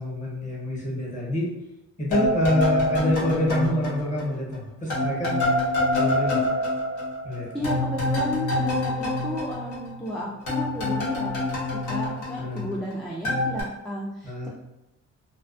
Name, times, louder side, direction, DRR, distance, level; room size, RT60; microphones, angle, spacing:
voice 1, 0.0-1.5 2.0-5.4 5.9-6.4 7.2-7.9 12.4-12.7 14.2-14.5, equal, 25° left, -4 dB, 1.0 m, -27 dB
sound 1, 2.1-4.6 4.9-10.1 10.5-12.9 13.2-13.6, left 2 dB, 75° left, 0.9 m, -26 dB
voice 2, 7.5-14.5, equal, ahead, -5 dB, 0.3 m, -33 dB
2.3 x 2.2 x 2.4 m, 0.90 s
cardioid pair, 90°, 30 cm